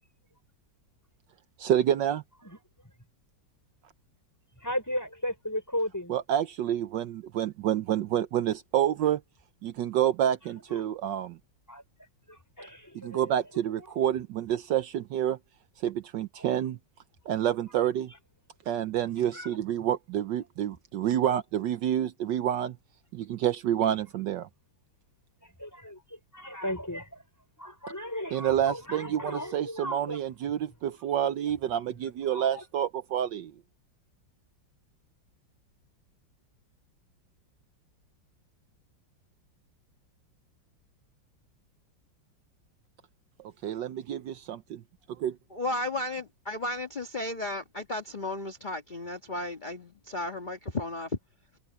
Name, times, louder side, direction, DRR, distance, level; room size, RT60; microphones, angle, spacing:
voice 1, 1.6-2.2 6.1-9.2 9.6-11.4 12.9-15.4 15.8-16.8 17.3-18.1 18.7-22.8 23.1-24.5 28.3-33.5 43.6-44.8 45.2-45.4, right 10 dB, 70° right, 1.3 m, -28 dB
voice 2, 4.6-6.1 11.7-11.8 12.3-13.4 19.1-19.6 25.6-26.0 26.3-27.2 27.6-30.2 32.3-32.6, left 1 dB, 10° left, 5.2 m, -35 dB
voice 3, 45.5-51.2, left 2 dB, 25° left, 1.7 m, -34 dB
omnidirectional pair, 2.1 m